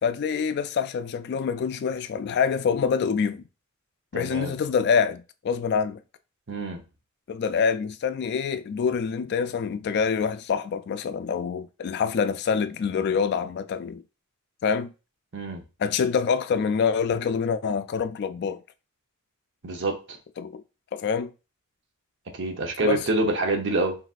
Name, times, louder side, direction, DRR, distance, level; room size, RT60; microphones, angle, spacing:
voice 1, 0.0-3.4 4.1-6.0 7.3-14.0 14.6-14.9 15.8-18.6 20.4-20.6 20.9-21.3 22.8-23.1, left 6 dB, 50° left, 0.3 m, -26 dB
voice 2, 4.1-4.5 6.5-6.8 15.3-15.6 19.6-20.2 22.3-24.0, right 2 dB, 60° right, 0.9 m, -26 dB
4.0 x 4.0 x 2.4 m
head